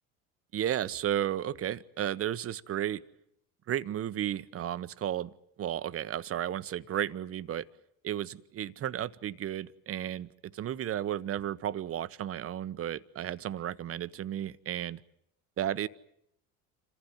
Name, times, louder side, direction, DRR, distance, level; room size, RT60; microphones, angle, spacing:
voice 1, 0.5-3.0 3.7-5.3 5.6-7.7 8.0-15.0 15.6-15.9, right 11 dB, 30° right, 16 dB, 0.9 m, -33 dB
27.0 x 15.0 x 9.6 m, 0.76 s
hypercardioid pair, 70°, 43 cm